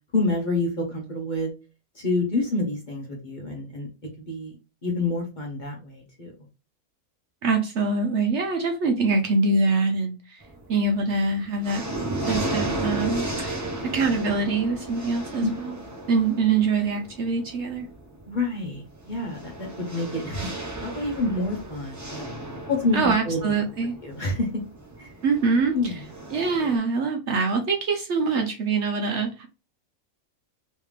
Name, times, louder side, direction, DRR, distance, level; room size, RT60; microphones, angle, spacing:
voice 1, 0.1-1.5 2.0-3.9 4.2-4.5 4.8-6.3 15.4-15.5 18.3-22.3 22.7-23.4 24.0-24.5 25.0-25.1 25.7-26.0, left 2 dB, 40° left, 0.9 m, -28 dB
voice 2, 7.4-11.8 12.3-13.7 13.9-15.8 16.1-17.9 22.9-24.0 25.2-26.0 26.3-29.5, right 4 dB, 60° right, 0.8 m, -24 dB
sound 1, 10.4-10.9 11.3-26.8, right 1 dB, 20° right, 0.6 m, -34 dB
3.4 x 3.1 x 3.2 m
omnidirectional pair, 1.5 m